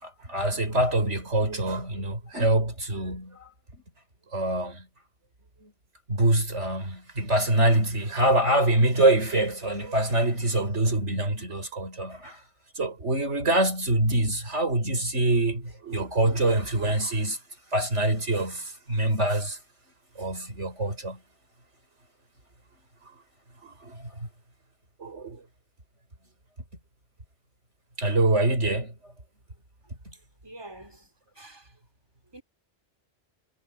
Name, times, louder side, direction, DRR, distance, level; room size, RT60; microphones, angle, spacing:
voice 1, 0.0-3.8 4.3-4.9 5.6-5.7 6.1-12.4 12.8-17.4 17.7-19.6 20.2-21.2 23.6-24.3 25.0-25.4 28.0-28.9, right 1 dB, 80° right, 5.5 m, -25 dB
voice 2, 30.1-31.8 32.3-32.4, right 2 dB, 20° right, 4.7 m, -47 dB
omnidirectional pair, 1.2 m